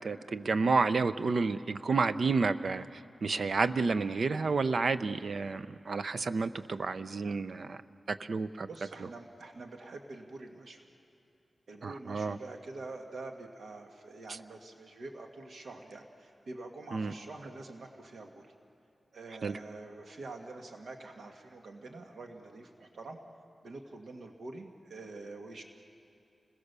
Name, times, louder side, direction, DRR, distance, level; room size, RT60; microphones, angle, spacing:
voice 1, 0.0-2.8 3.2-7.8 8.1-8.7 11.8-12.4 14.3-14.4 16.9-17.1 19.4-19.6, right 4 dB, 65° right, 12 dB, 0.7 m, -30 dB
voice 2, 8.6-10.8 11.7-18.5 19.1-23.2 23.6-25.6, right 2 dB, 85° right, 3 dB, 1.8 m, -46 dB
30.0 x 21.5 x 6.8 m, 2.8 s
wide cardioid pair, 110°, 0 cm